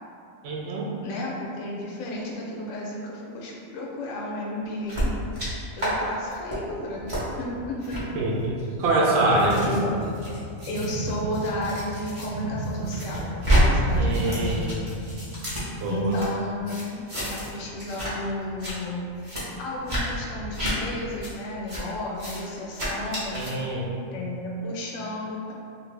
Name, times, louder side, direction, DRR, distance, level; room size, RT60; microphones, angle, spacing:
voice 1, 0.4-0.9 8.1-9.6 14.0-14.7 15.8-16.2 23.3-23.9, right 2 dB, 65° right, -3 dB, 0.7 m, -25 dB
voice 2, 1.0-5.1 5.8-8.0 9.6-10.0 10.7-14.7 15.9-19.0 19.6-23.5 24.1-25.5, left 1 dB, 75° left, -3 dB, 1.0 m, -33 dB
sound 1, 4.9-5.5 5.8-5.9 6.3-6.6 7.1-7.2 7.8-8.0 8.7-12.3 12.6-13.6 13.9-16.3 16.7-17.5 17.8-18.1 18.4-18.7 19.2-19.4 19.9-20.0 20.5-20.7 21.2-21.3 21.7-21.8 22.1-22.4 22.7-23.5, right 1 dB, 30° right, 0.7 m, -28 dB
sound 2, 9.1-15.4, right 2 dB, 90° right, 1.0 m, -34 dB
2.7 x 2.5 x 3.2 m, 2.5 s
omnidirectional pair, 1.4 m